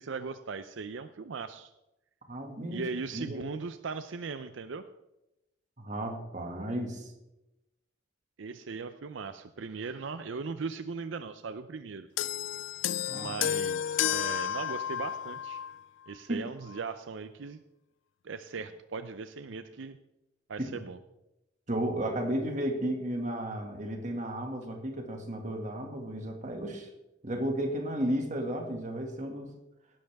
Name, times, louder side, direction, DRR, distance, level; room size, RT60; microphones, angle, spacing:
voice 1, 0.0-1.7 2.7-4.8 8.4-12.1 13.1-15.6 16.1-17.6 18.2-20.0 20.5-21.0, right 4 dB, 75° right, 11 dB, 0.5 m, -38 dB
voice 2, 2.3-2.9 3.1-3.4 5.8-7.1 13.1-13.5 16.3-16.5 20.6-20.7 21.7-26.9 27.2-29.5, right 1 dB, 40° right, 3 dB, 2.0 m, -33 dB
sound 1, 12.2-15.8 16.7-16.8, left 10 dB, 80° left, 0.4 m, -32 dB
18.0 x 11.0 x 3.5 m, 0.94 s
head